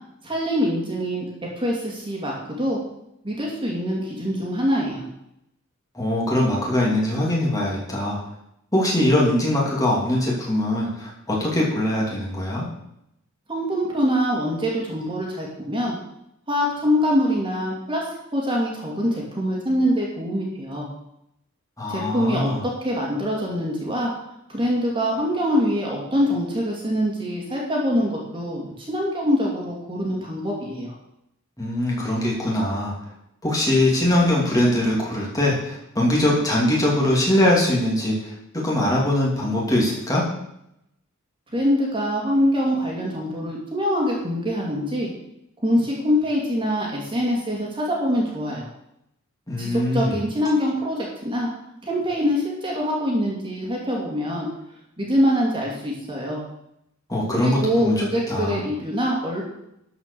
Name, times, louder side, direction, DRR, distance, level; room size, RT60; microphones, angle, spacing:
voice 1, 0.2-1.2 1.6-2.8 3.2-5.0 13.5-16.0 16.5-18.0 18.3-20.9 21.9-24.1 24.5-30.9 41.5-45.1 45.6-48.7 49.6-51.5 51.8-54.5 55.0-56.4 57.4-59.4, equal, 25° right, -3 dB, 2.8 m, -24 dB
voice 2, 5.9-8.2 8.7-12.7 21.8-22.6 31.6-32.9 33.4-40.2 49.5-50.2 57.1-58.6, left 1 dB, 15° left, -4 dB, 3.0 m, -22 dB
12.5 x 5.7 x 7.0 m, 0.80 s
head